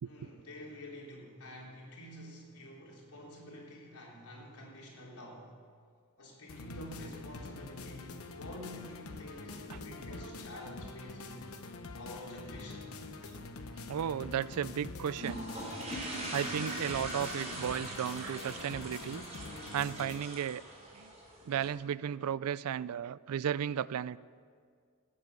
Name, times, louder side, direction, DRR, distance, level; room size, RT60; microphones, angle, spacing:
voice 1, 0.0-5.6 6.2-11.4 11.9-12.9, left 1 dB, 90° left, -3 dB, 3.6 m, -48 dB
sound 1, 6.5-20.2, left 3 dB, 70° left, 1.0 m, -45 dB
voice 2, 13.9-15.5 16.3-19.2 19.7-20.6 21.0-21.1 21.5-24.2, right 9 dB, 80° right, 20 dB, 0.3 m, -34 dB
sound 2, 15.1-21.7, right 1 dB, 30° right, 4.8 m, -42 dB
18.0 x 8.5 x 6.8 m, 2.1 s
head